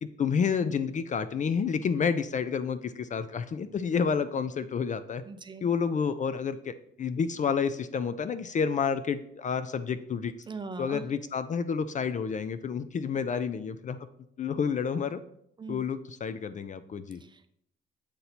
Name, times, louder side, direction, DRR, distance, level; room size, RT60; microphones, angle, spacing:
voice 1, 0.0-5.2 5.6-10.3 10.8-14.0 14.4-15.2 15.7-17.2, left 6 dB, 40° left, 12 dB, 0.4 m, -29 dB
voice 2, 5.3-5.7 10.5-11.0 15.6-15.8 17.2-17.5, right 4 dB, 25° right, 9 dB, 0.6 m, -40 dB
8.0 x 2.8 x 5.9 m, 0.73 s
cardioid pair, 90°, 20 cm